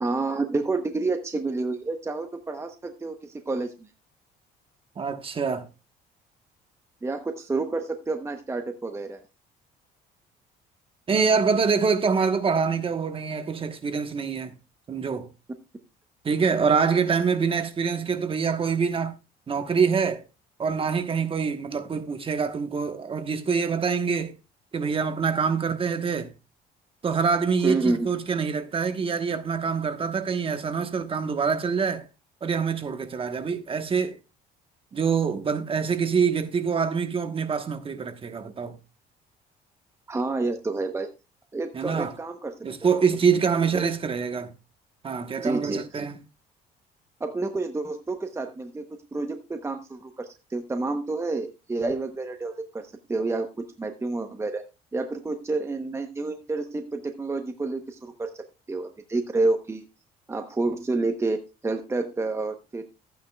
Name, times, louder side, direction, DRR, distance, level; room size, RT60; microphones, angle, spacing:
voice 1, 0.0-3.9 7.0-9.2 27.6-28.1 40.1-41.1 41.5-42.5 43.7-43.8 45.4-45.8 47.2-54.6 54.9-59.8 60.3-62.8, right 3 dB, 15° right, 0.9 m, -29 dB
voice 2, 5.0-5.7 11.1-14.5 14.9-15.3 16.2-19.1 19.5-20.2 20.6-24.3 24.7-26.3 27.0-32.1 32.4-34.2 34.9-38.8 41.7-42.1 42.6-44.5 45.0-46.2, right 5 dB, 35° right, 1.2 m, -25 dB
14.0 x 9.2 x 2.3 m
cardioid pair, 110°, 17 cm